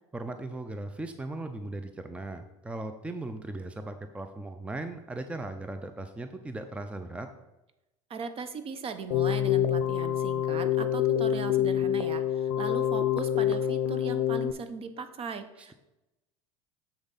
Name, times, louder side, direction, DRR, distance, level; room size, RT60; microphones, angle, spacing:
voice 1, 0.1-7.3 15.6-15.7, right 2 dB, 5° right, 8 dB, 0.6 m, -38 dB
voice 2, 8.1-15.7, right 5 dB, 35° right, 10 dB, 0.8 m, -38 dB
Keyboard (musical), 9.1-14.5, left 10 dB, 75° left, 0.5 m, -26 dB
7.2 x 6.3 x 4.1 m, 0.95 s
hypercardioid pair, 90°, 16 cm